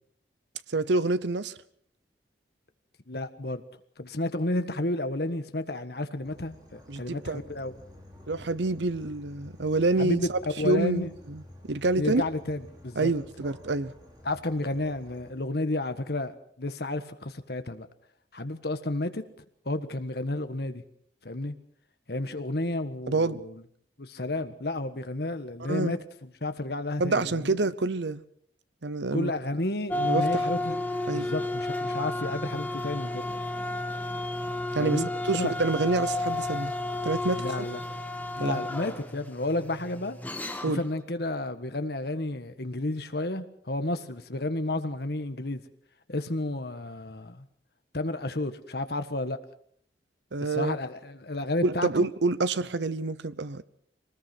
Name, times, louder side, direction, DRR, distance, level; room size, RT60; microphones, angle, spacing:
voice 1, 0.7-1.5 6.9-7.4 8.3-10.4 10.6-11.4 11.7-12.2 13.0-13.9 23.1-23.4 25.7-26.0 27.0-28.2 28.8-29.3 30.0-30.5 31.1-31.3 34.7-36.7 37.0-37.4 38.4-38.6 40.6-40.8 50.3-50.8 51.6-53.6, right 3 dB, 75° right, 0.8 m, -27 dB
voice 2, 3.1-3.6 4.0-7.7 10.0-10.3 10.6-11.1 12.0-13.1 14.2-16.3 16.6-17.9 18.3-19.2 19.6-20.8 21.2-21.5 22.1-23.6 24.0-27.5 29.1-30.8 31.1-33.3 34.8-35.5 37.4-37.8 38.4-40.2 40.7-45.6 46.1-47.4 47.9-49.4 50.4-52.1, left 2 dB, 60° left, 1.5 m, -31 dB
sound 1, 6.2-15.3, left 1 dB, 20° right, 5.4 m, -50 dB
sound 2, 29.9-40.9, left 2 dB, 10° left, 1.8 m, -32 dB
23.0 x 20.0 x 6.1 m
head